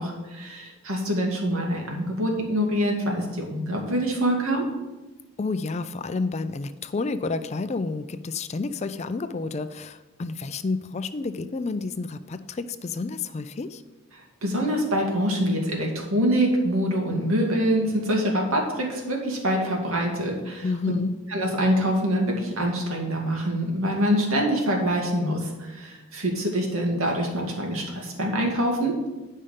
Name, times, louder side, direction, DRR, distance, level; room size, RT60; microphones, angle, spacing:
voice 1, 0.0-4.6 14.1-20.7 21.3-28.9, equal, 85° right, 0 dB, 2.1 m, -25 dB
voice 2, 5.4-13.8 20.6-21.1, left 3 dB, 30° left, 12 dB, 0.3 m, -30 dB
10.5 x 5.5 x 5.0 m, 1.1 s
head